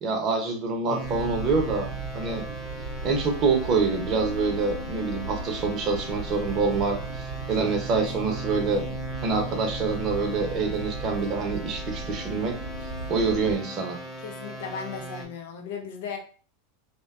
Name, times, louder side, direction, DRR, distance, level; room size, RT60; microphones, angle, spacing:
voice 1, 0.0-1.9 2.1-2.4 3.0-8.8 9.2-12.5 13.1-14.0, right 4 dB, 40° right, 3 dB, 0.7 m, -26 dB
sound 1, 0.9-15.2, right 2 dB, 5° right, 0.8 m, -38 dB
sound 2, 1.0-13.6, right 2 dB, 70° right, 0.9 m, -37 dB
voice 2, 14.2-16.2, left 6 dB, 65° left, 3 dB, 0.5 m, -36 dB
2.5 x 2.2 x 2.3 m, 0.42 s
hypercardioid pair, 90°, 0 cm